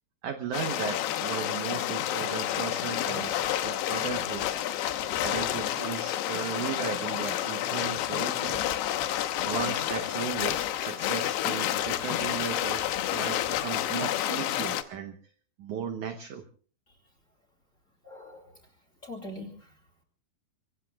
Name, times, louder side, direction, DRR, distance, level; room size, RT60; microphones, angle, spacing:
voice 1, 0.2-4.7 5.2-8.6 9.5-15.2 15.6-16.5, right 7 dB, 70° right, 7 dB, 1.9 m, -36 dB
sound 1, 0.5-14.8, left 12 dB, 90° left, 3.1 m, -30 dB
voice 2, 18.0-19.8, left 1 dB, 25° left, 1 dB, 2.4 m, -44 dB
26.0 x 23.5 x 2.3 m, 0.43 s
omnidirectional pair, 4.7 m